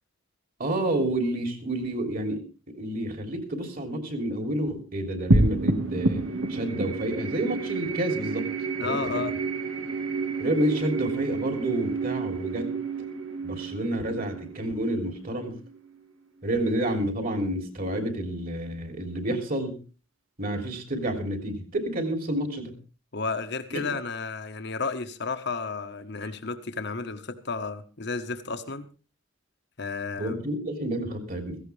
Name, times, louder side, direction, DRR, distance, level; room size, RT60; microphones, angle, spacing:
voice 1, 0.6-6.2 6.5-8.4 8.8-9.0 10.4-12.7 13.4-15.6 16.4-19.8 20.4-22.7 23.7-23.9 30.2-31.6, right 1 dB, 45° right, 6 dB, 3.3 m, -29 dB
sound 1, 5.3-16.0, right 3 dB, 75° right, 1.6 m, -29 dB
voice 2, 8.8-9.3 23.1-28.9 29.8-30.4, left 4 dB, 55° left, 8 dB, 1.4 m, -32 dB
16.5 x 15.5 x 3.4 m, 0.34 s
head